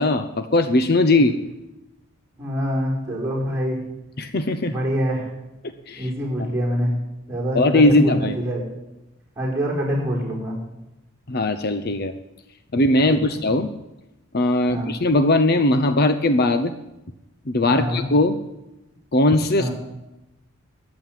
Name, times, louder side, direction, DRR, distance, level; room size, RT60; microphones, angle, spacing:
voice 1, 0.0-1.4 4.2-4.7 5.9-6.1 6.4-6.5 7.6-8.3 11.3-12.1 12.7-13.7 14.3-16.7 17.5-18.4 19.1-19.7, left 2 dB, 50° left, 10 dB, 0.7 m, -19 dB
voice 2, 2.4-3.8 4.7-5.3 6.0-7.0 7.3-8.6 9.4-10.6 13.1-13.4 14.7-14.9 17.7-18.0 19.6-19.7, equal, 15° right, -3 dB, 5.3 m, -25 dB
14.0 x 9.8 x 9.1 m, 0.95 s
head